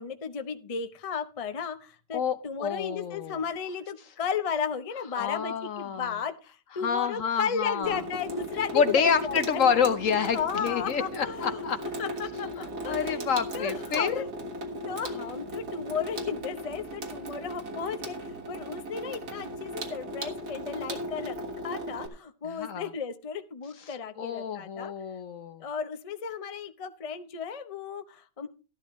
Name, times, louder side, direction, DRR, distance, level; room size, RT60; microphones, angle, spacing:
voice 1, 0.0-9.6 10.3-11.6 12.0-13.2 13.5-14.3 14.7-21.4 21.6-24.9 25.6-28.5, left 6 dB, 40° left, 9 dB, 0.5 m, -34 dB
voice 2, 2.1-3.4 5.2-6.1 6.8-8.0 8.7-11.8 12.9-14.2 22.4-22.9 24.2-25.6, left 7 dB, 60° left, 11 dB, 0.9 m, -28 dB
Water tap faucet / Sink (filling or washing), 7.8-22.1, equal, 65° right, 2.1 m, -37 dB
13.5 x 11.5 x 3.1 m, 0.32 s
omnidirectional pair, 1.8 m